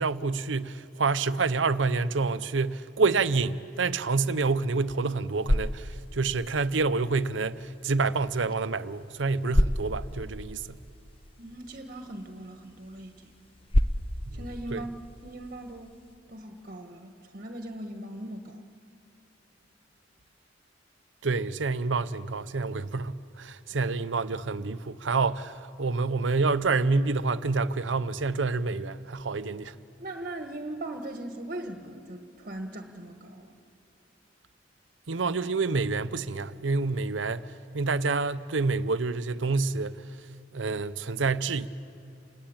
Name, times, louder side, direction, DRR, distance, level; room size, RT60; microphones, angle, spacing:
voice 1, 0.0-10.8 14.3-14.4 14.7-14.9 21.2-29.7 35.1-40.0 40.5-41.7, right 4 dB, 80° right, 0.7 m, -28 dB
sound 1, 5.1-16.2, left 1 dB, 30° left, 0.7 m, -33 dB
voice 2, 11.4-13.3 14.3-14.9 15.2-16.0 16.3-18.6 30.0-33.6, right 1 dB, 45° right, 1.4 m, -39 dB
28.5 x 20.5 x 8.8 m
head